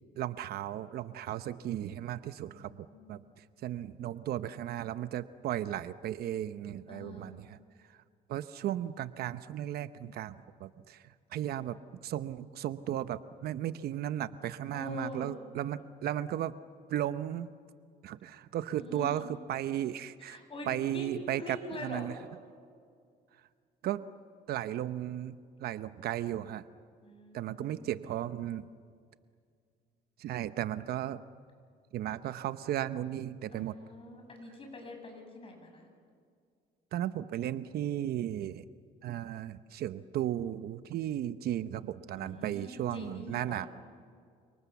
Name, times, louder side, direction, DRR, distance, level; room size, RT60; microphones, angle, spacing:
voice 1, 0.2-2.8 3.1-7.6 7.9-8.0 8.3-11.8 12.0-16.5 16.9-17.5 18.0-20.4 20.7-22.1 23.8-24.0 24.5-26.6 27.3-28.7 30.2-31.2 31.9-33.7 36.9-38.6 39.0-43.7, right 12 dB, 65° right, 12 dB, 0.9 m, -35 dB
voice 2, 2.4-3.3 6.9-7.4 14.7-15.3 18.8-19.3 20.2-22.1 27.0-28.0 33.5-35.9 42.2-43.7, left 2 dB, 35° left, 3 dB, 7.8 m, -45 dB
29.5 x 26.0 x 7.1 m, 2.1 s
cardioid pair, 110°, 17 cm